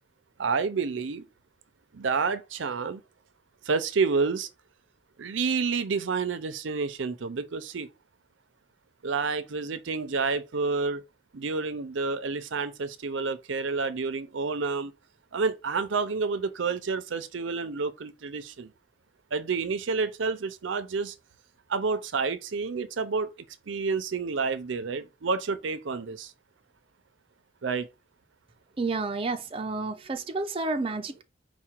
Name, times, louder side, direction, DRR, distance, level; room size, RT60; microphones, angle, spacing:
voice 1, 0.4-1.2 1.9-3.0 3.6-4.5 5.2-7.9 9.0-11.0 11.3-14.9 15.3-18.7 19.3-21.1 21.7-23.3 23.7-26.3 27.6-27.9, right 4 dB, 80° right, 0.6 m, -29 dB
voice 2, 28.8-31.2, right 3 dB, 30° right, 0.5 m, -30 dB
4.8 x 2.3 x 4.4 m
head